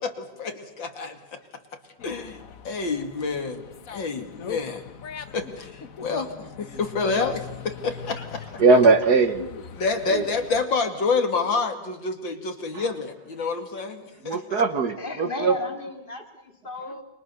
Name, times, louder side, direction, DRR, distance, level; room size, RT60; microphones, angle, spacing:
voice 1, 0.0-1.4 2.0-2.4 2.6-4.8 5.3-8.4 9.4-9.5 9.7-14.6, left 4 dB, 65° left, 6 dB, 3.0 m, -28 dB
Dog, 2.0-10.6, left 7 dB, 50° left, 1.3 m, -40 dB
voice 2, 8.6-9.4 10.1-10.2 12.7-12.8 14.2-15.6, right 4 dB, 55° right, 9 dB, 1.8 m, -19 dB
voice 3, 15.0-17.0, left 2 dB, 25° left, 4 dB, 3.0 m, -34 dB
29.5 x 26.0 x 6.9 m, 0.88 s
omnidirectional pair, 2.2 m